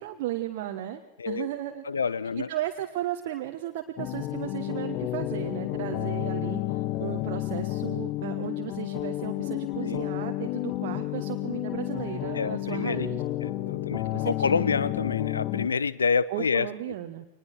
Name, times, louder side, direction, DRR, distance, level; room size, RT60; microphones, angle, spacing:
voice 1, 0.0-1.8 2.5-13.2 13.9-14.7 16.3-17.3, right 13 dB, 50° right, 4 dB, 1.3 m, -35 dB
voice 2, 1.8-2.5 9.8-10.0 12.3-13.1 13.4-16.7, left 5 dB, 70° left, 19 dB, 0.7 m, -28 dB
sound 1, 4.0-15.7, left 15 dB, 45° left, 1.1 m, -31 dB
24.0 x 20.5 x 6.2 m, 0.82 s
figure-of-eight pair, 90°, 0 cm